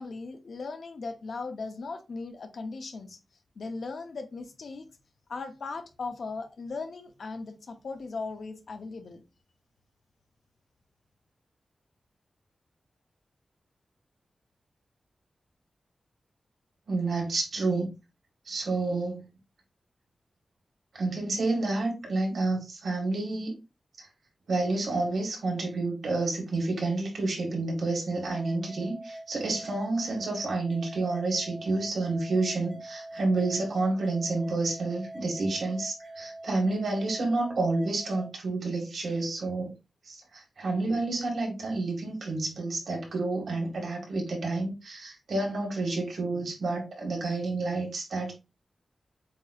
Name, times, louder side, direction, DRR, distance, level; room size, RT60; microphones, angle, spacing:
voice 1, 0.0-3.2 3.6-4.9 5.3-9.2, left 4 dB, 65° left, 0.8 m, -38 dB
voice 2, 16.9-17.9 18.5-19.2 20.9-23.6 24.0-24.1 24.5-39.7 40.0-48.3, right 3 dB, 75° right, 2.0 m, -29 dB
sound 1, 28.3-38.3, right 1 dB, 25° left, 1.3 m, -44 dB
7.3 x 2.8 x 2.4 m
wide cardioid pair, 165°, 0 cm